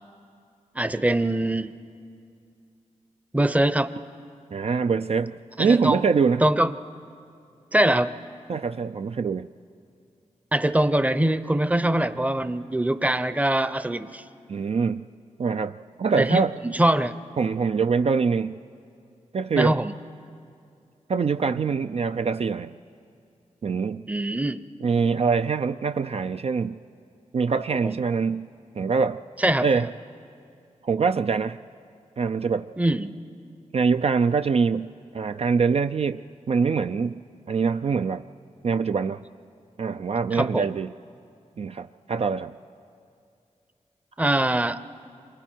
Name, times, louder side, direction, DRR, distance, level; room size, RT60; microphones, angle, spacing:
voice 1, 0.8-1.7 3.3-3.9 5.6-6.0 6.4-6.7 7.7-8.1 10.5-14.2 16.2-17.1 19.5-19.9 24.1-24.6 27.8-27.9 29.4-29.8 32.8-33.1 40.3-40.7 44.2-44.8, right 1 dB, 10° right, 13 dB, 0.7 m, -23 dB
voice 2, 4.5-6.4 8.5-9.5 14.5-15.1 15.4-16.5 17.4-18.6 19.3-19.8 21.1-22.8 23.6-24.0 24.8-26.8 27.3-28.5 28.7-29.2 29.6-29.9 30.8-31.6 32.2-32.7 33.7-36.2 36.5-37.2 37.5-38.2 38.6-39.2 39.8-40.9 41.6-42.5, right 5 dB, 50° right, 9 dB, 0.4 m, -24 dB
28.5 x 24.0 x 4.5 m, 2.4 s
cardioid pair, 65°, 13 cm